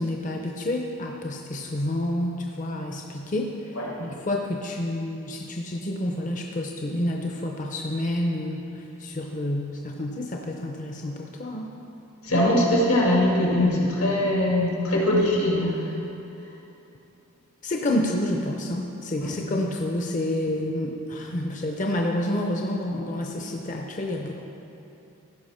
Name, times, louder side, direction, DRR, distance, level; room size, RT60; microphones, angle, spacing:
voice 1, 0.0-3.5 4.0-11.7 17.6-24.4, left 1 dB, 35° left, 1 dB, 0.6 m, -29 dB
voice 2, 12.2-15.8 19.2-19.3, left 1 dB, 90° left, -3 dB, 2.2 m, -21 dB
15.5 x 5.8 x 4.3 m, 2.9 s
head